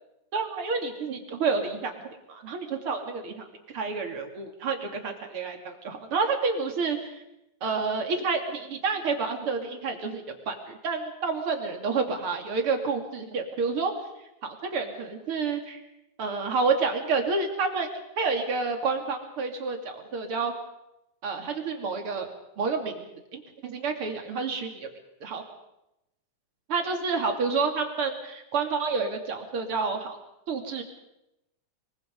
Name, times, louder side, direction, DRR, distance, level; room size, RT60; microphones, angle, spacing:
voice 1, 0.3-3.5 3.7-7.2 7.6-13.9 14.4-15.8 16.2-17.9 18.2-20.5 21.2-22.3 22.6-23.1 23.3-24.9 25.2-25.4 26.7-30.2 30.5-30.8, right 4 dB, 45° right, 4 dB, 3.5 m, -29 dB
24.0 x 24.0 x 5.4 m, 0.88 s
omnidirectional pair, 3.5 m